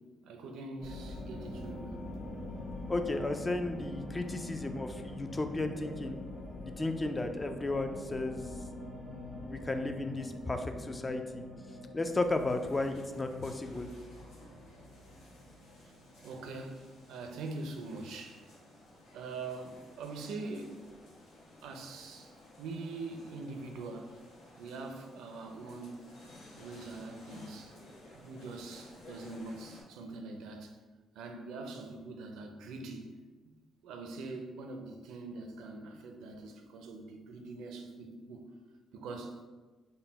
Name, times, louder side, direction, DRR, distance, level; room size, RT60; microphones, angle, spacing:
voice 1, 0.2-2.1 15.9-16.0 16.2-18.4 19.1-20.9 21.6-24.2 24.6-26.1 26.6-27.8 28.1-30.8 31.2-33.2 33.8-38.5 38.9-39.4, right 3 dB, 85° right, 4 dB, 0.4 m, -43 dB
sound 1, 0.8-17.7, left 1 dB, 45° left, 1.1 m, -44 dB
voice 2, 2.9-6.2 6.6-8.4 9.4-11.4 11.9-13.9, left 2 dB, 20° left, 6 dB, 0.3 m, -34 dB
sound 2, 12.2-29.8, left 1 dB, 85° left, 1.0 m, -56 dB
3.9 x 2.1 x 4.0 m, 1.3 s
cardioid pair, 90°, 0 cm